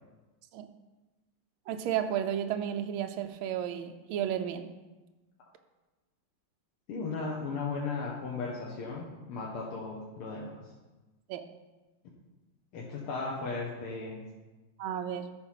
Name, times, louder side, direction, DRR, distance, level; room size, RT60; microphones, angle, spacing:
voice 1, 1.7-4.7 11.3-11.4 14.8-15.3, right 10 dB, 75° right, 7 dB, 1.5 m, -33 dB
voice 2, 6.9-10.6 12.7-14.3, left 4 dB, 90° left, -3 dB, 2.1 m, -36 dB
13.0 x 4.4 x 5.7 m, 1.1 s
omnidirectional pair, 2.3 m